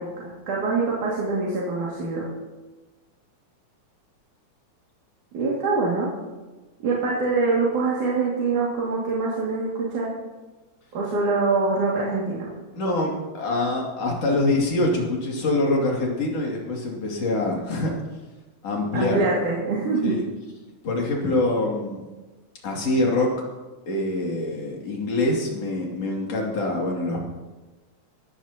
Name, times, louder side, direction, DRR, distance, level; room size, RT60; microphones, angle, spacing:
voice 1, 0.0-2.3 5.3-6.1 6.8-10.1 10.9-12.5 18.9-20.1, right 3 dB, 90° right, -5 dB, 3.8 m, -24 dB
voice 2, 12.7-17.9 18.6-19.2 20.0-20.2 20.8-22.0 22.6-23.3 23.9-27.2, left 2 dB, 55° left, -2 dB, 3.6 m, -24 dB
18.5 x 14.5 x 2.9 m, 1.2 s
omnidirectional pair, 3.4 m